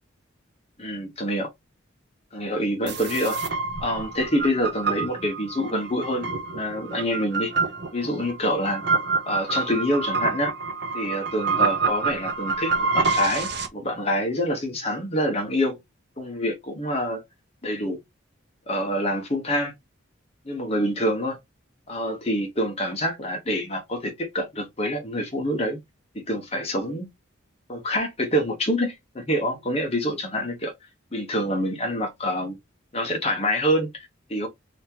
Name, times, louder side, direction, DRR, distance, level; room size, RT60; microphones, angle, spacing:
voice 1, 0.8-1.5 2.3-3.4 3.8-6.3 6.5-7.5 7.9-8.8 9.3-10.5 10.9-15.8 16.2-17.2 17.6-18.0 18.7-19.7 20.4-21.4 21.9-25.8 26.1-27.1 27.7-30.7 31.1-32.6 32.9-34.5, equal, 30° left, 1.1 m, -26 dB
sound 1, 2.9-13.7, right 4 dB, 55° right, 0.8 m, -27 dB
3.5 x 2.9 x 2.9 m
head